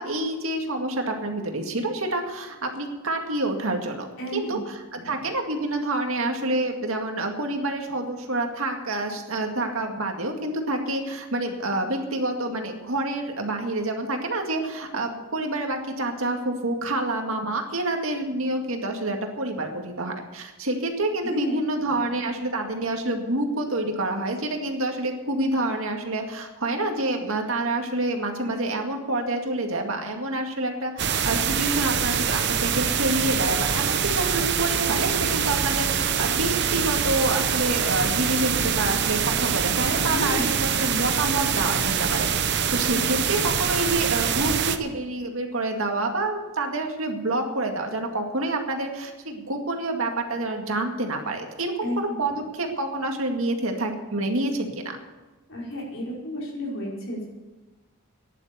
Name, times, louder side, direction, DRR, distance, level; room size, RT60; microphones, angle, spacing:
voice 1, 0.0-4.1 4.3-4.6 4.9-55.0, right 2 dB, 65° right, 3 dB, 2.1 m, -28 dB
voice 2, 4.2-4.6 4.9-5.2 21.2-21.5 21.8-22.0 40.0-40.9 51.8-52.2 55.5-57.3, equal, 60° left, -3 dB, 5.0 m, -32 dB
sound 1, 31.0-44.8, right 7 dB, 50° right, 0.9 m, -24 dB
14.5 x 10.5 x 6.9 m, 1.2 s
head